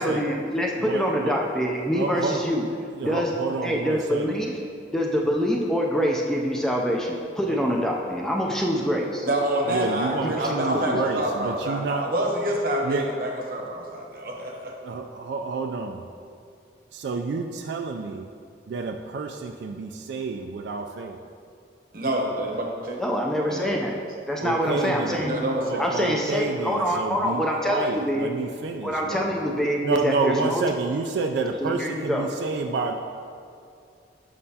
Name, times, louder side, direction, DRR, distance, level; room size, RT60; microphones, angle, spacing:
voice 1, 0.0-2.7 3.0-3.3 3.6-4.6 4.9-9.3 10.2-11.0 23.0-24.0 24.2-25.3 25.8-28.3 28.8-30.6 31.6-32.3, equal, 5° left, -1 dB, 0.4 m, -25 dB
voice 2, 0.8-1.4 2.0-2.4 3.0-4.2 7.5-7.8 9.7-12.1 12.8-13.1 14.8-16.0 16.9-18.3 18.7-21.2 24.4-25.3 25.6-29.3 29.8-32.9, right 4 dB, 75° right, 4 dB, 0.3 m, -29 dB
voice 3, 9.2-14.7 21.9-23.0 23.5-23.7 25.1-25.9, right 1 dB, 50° right, 0 dB, 0.9 m, -27 dB
7.4 x 5.5 x 2.8 m, 2.3 s
head